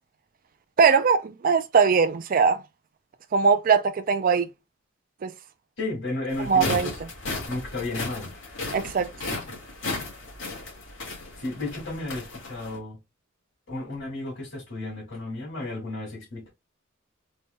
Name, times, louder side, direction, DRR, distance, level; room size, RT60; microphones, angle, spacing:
voice 1, 0.8-2.6 3.3-4.5 5.2-5.3 6.5-6.9 8.7-9.1, right 5 dB, 45° right, 0.4 m, -21 dB
voice 2, 5.8-7.0 7.5-8.3 11.4-13.0 13.7-16.5, left 2 dB, 90° left, 2.4 m, -33 dB
sound 1, 6.3-12.8, left 3 dB, 70° left, 2.0 m, -35 dB
4.1 x 3.3 x 2.2 m
head